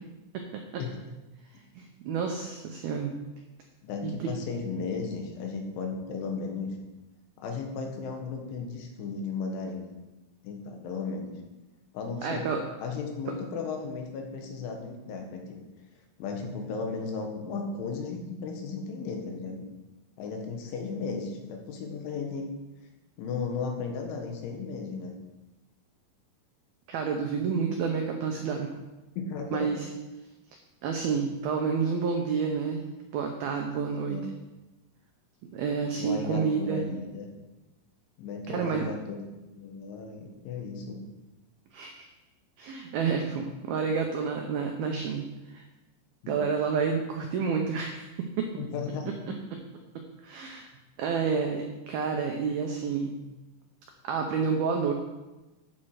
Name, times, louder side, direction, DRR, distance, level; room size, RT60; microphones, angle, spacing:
voice 1, 1.8-3.1 4.0-4.3 12.2-12.6 26.9-28.7 29.5-29.8 30.8-32.9 33.1-34.2 35.5-36.8 38.5-38.9 41.7-42.1 42.6-45.2 45.5-45.6 46.3-48.5 50.2-50.7 51.0-53.2 54.0-54.9, right 5 dB, 85° right, 3 dB, 2.1 m, -29 dB
voice 2, 3.8-6.8 7.4-9.9 10.4-11.4 11.9-12.5 12.8-15.6 16.2-19.6 20.2-22.5 23.2-25.1 29.2-29.7 33.9-34.3 36.0-37.3 38.2-41.0 46.2-46.5 48.6-49.1, left 4 dB, 75° left, 2 dB, 3.9 m, -35 dB
13.0 x 7.5 x 4.9 m, 1.1 s
omnidirectional pair, 5.6 m